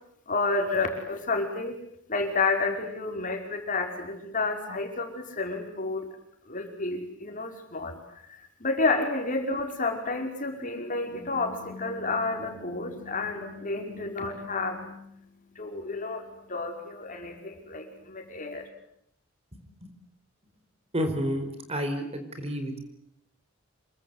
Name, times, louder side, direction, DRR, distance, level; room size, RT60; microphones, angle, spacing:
voice 1, 0.3-1.8 2.1-6.1 6.5-8.0 8.3-15.3 15.5-18.7, left 3 dB, 40° left, 4 dB, 5.3 m, -30 dB
voice 2, 20.9-22.8, equal, 30° right, 7 dB, 4.8 m, -30 dB
28.0 x 24.0 x 8.2 m, 0.74 s
head